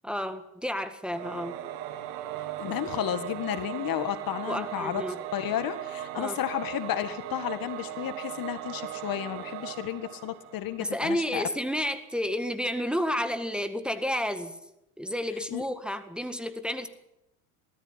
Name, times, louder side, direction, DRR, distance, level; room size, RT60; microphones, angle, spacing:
voice 1, 0.0-1.6 4.5-5.2 6.2-6.4 10.8-14.5 15.0-16.9, equal, ahead, 8 dB, 1.8 m, -31 dB
Singing / Musical instrument, 1.1-11.1, right 12 dB, 75° right, 2.1 m, -38 dB
voice 2, 2.6-5.0 5.3-11.5 15.5-15.6, left 11 dB, 50° left, 11 dB, 1.8 m, -32 dB
20.0 x 14.0 x 9.9 m, 0.87 s
supercardioid pair, 105°, 44 cm